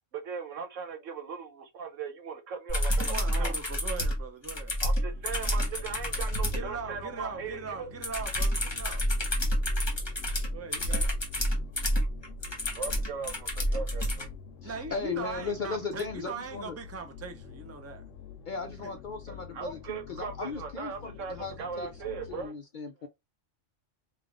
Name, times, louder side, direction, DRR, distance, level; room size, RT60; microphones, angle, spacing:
voice 1, 0.1-3.6 4.8-7.9 12.7-14.3 19.3-22.5, right 6 dB, 85° right, 1.2 m, -39 dB
sound 1, 2.7-6.7 8.0-14.3 16.0-16.1, equal, 25° left, 0.9 m, -29 dB
voice 2, 3.0-4.8 6.5-9.0 10.5-11.1 14.6-18.0 18.8-18.9, right 5 dB, 20° right, 0.4 m, -40 dB
sound 2, 4.4-22.5, left 7 dB, 90° left, 1.0 m, -48 dB
voice 3, 14.6-16.8 18.5-23.1, left 5 dB, 60° left, 0.5 m, -37 dB
3.5 x 2.4 x 3.4 m
omnidirectional pair, 1.3 m